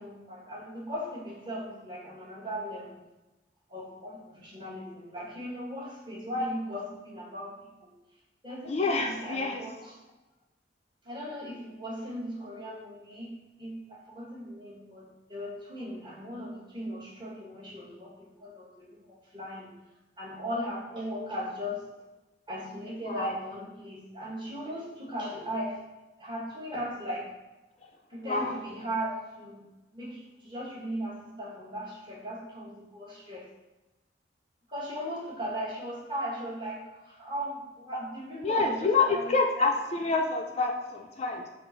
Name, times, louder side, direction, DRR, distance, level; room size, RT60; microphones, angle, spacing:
voice 1, 0.0-2.9 3.7-7.9 8.4-10.0 11.0-19.7 20.2-21.8 22.5-25.8 26.2-27.3 28.1-29.6 29.9-33.5 34.7-39.7, equal, 25° right, -4 dB, 1.0 m, -38 dB
voice 2, 8.7-9.6 23.0-23.3 28.2-28.5 38.4-41.5, left 3 dB, 35° left, 2 dB, 0.3 m, -27 dB
5.5 x 2.4 x 3.8 m, 1.0 s
head